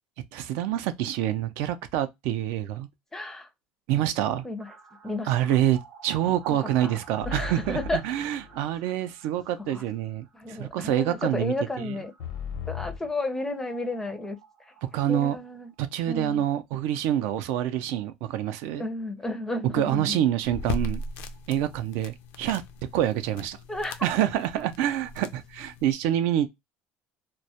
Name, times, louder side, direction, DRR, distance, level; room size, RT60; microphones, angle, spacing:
voice 1, 0.3-2.9 3.9-4.4 5.3-11.5 14.9-15.4 15.8-18.8 19.7-21.0 21.5-22.6 22.9-23.6 24.0-26.5, right 11 dB, 75° right, 0.4 m, -26 dB
voice 2, 3.1-3.5 4.4-4.7 5.0-5.6 6.5-7.0 7.2-8.0 9.6-9.8 10.3-12.1 12.7-14.4 15.1-15.7 16.1-16.5 18.8-20.3 23.7-24.1, left 2 dB, 10° left, 0.4 m, -32 dB
sound 1, 4.6-16.2 16.5-16.6 16.8-16.9 20.0-20.1 20.3-20.4 20.6-22.4 22.7-22.8, right 7 dB, 40° right, 0.6 m, -52 dB
sound 2, 7.2-8.9 12.2-13.1, left 5 dB, 90° left, 0.7 m, -37 dB
sound 3, 20.4-25.9, left 3 dB, 70° left, 0.4 m, -38 dB
2.2 x 2.1 x 2.6 m
cardioid pair, 130°, 4 cm